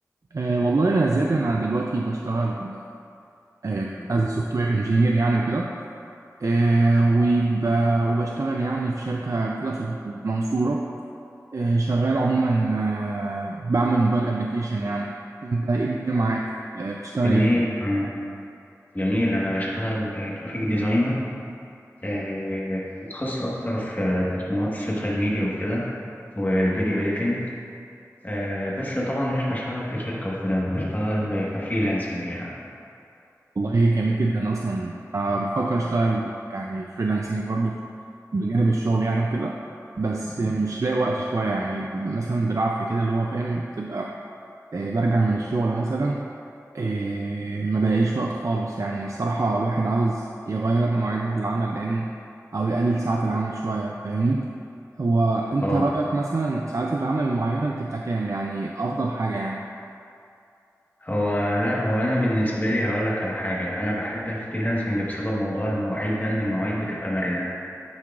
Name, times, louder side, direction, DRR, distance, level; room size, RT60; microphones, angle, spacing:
voice 1, 0.3-2.8 3.6-5.7 6.4-10.8 11.5-15.1 15.4-17.5 33.6-37.8 38.3-39.6 40.0-44.1 44.7-46.3 46.7-52.1 52.5-54.5 55.0-59.6, right 2 dB, 60° right, 0 dB, 0.4 m, -24 dB
voice 2, 4.0-4.4 17.2-18.1 18.9-21.2 22.0-22.8 23.1-25.8 26.3-27.4 28.2-32.5 40.4-40.5 55.6-55.8 61.0-67.5, equal, 30° left, -5 dB, 1.3 m, -25 dB
10.5 x 4.6 x 2.4 m, 2.6 s
wide cardioid pair, 45°, 6 cm